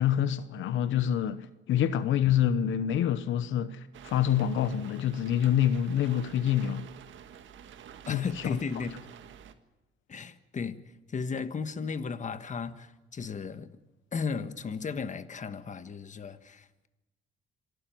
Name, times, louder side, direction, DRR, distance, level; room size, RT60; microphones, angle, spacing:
voice 1, 0.0-6.9 8.1-8.6, left 10 dB, 80° left, 0.9 m, -27 dB
sound 1, 3.9-9.5, right 9 dB, 75° right, 1.6 m, -49 dB
voice 2, 8.1-8.9 10.1-10.8 11.1-13.7 14.1-16.9, left 5 dB, 40° left, 1.4 m, -35 dB
27.0 x 12.0 x 9.3 m
cardioid pair, 90°, 20 cm